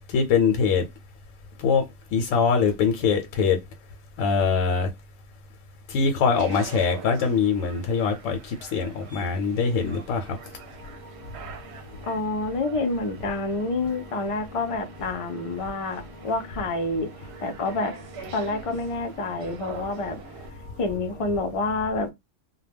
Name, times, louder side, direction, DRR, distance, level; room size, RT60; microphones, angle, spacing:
voice 1, 0.1-0.8 1.6-1.8 2.1-3.6 4.2-4.9 5.9-10.3, left 5 dB, 85° left, 1.0 m, -23 dB
sound 1, 6.3-20.5, right 7 dB, 65° right, 0.8 m, -45 dB
sound 2, 9.7-21.6, equal, 10° left, 0.8 m, -48 dB
voice 2, 12.0-17.1 17.4-17.9 18.3-20.2 20.8-22.1, left 3 dB, 55° left, 0.3 m, -28 dB
2.2 x 2.1 x 3.3 m
omnidirectional pair, 1.3 m